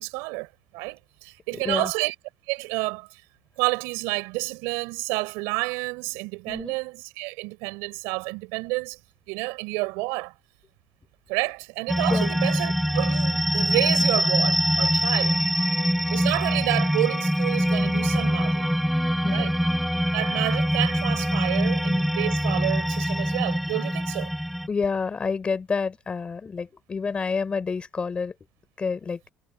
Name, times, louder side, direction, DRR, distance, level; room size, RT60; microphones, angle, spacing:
voice 1, 0.0-2.1 2.5-3.2 3.6-9.0 9.3-10.3 11.3-15.4 16.1-18.7 19.3-19.5 20.1-24.3, right 27 dB, 85° right, 5.7 m, -29 dB
sound 1, 11.9-24.7, equal, ahead, 1.2 m, -24 dB
voice 2, 24.7-28.3 28.8-29.2, left 5 dB, 25° left, 6.3 m, -29 dB
cardioid pair, 120°, 4 cm